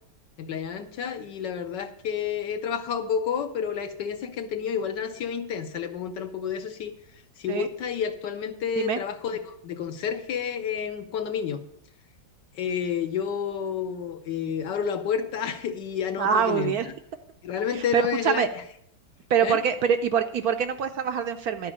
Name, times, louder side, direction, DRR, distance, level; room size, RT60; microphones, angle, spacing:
voice 1, 0.4-6.9 7.4-11.6 12.5-16.7 17.4-18.5 19.4-19.6, left 7 dB, 70° left, 7 dB, 1.3 m, -30 dB
voice 2, 16.2-16.9 17.7-18.5 19.3-21.7, right 7 dB, 70° right, 8 dB, 0.9 m, -24 dB
12.0 x 4.9 x 8.4 m, 0.71 s
omnidirectional pair, 2.1 m